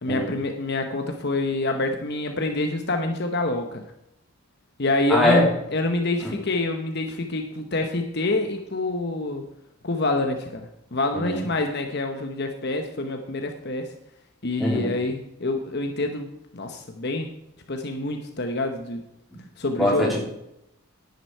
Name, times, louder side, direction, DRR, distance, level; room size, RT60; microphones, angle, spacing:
voice 1, 0.0-3.8 4.8-9.4 9.8-13.9 14.4-17.3 17.7-19.0 19.6-20.1, left 2 dB, 50° left, 5 dB, 0.9 m, -26 dB
voice 2, 5.1-5.5 6.2-6.3 11.1-11.4 14.6-14.9 19.8-20.2, left 1 dB, ahead, -3 dB, 3.2 m, -22 dB
10.5 x 9.7 x 4.6 m, 0.84 s
head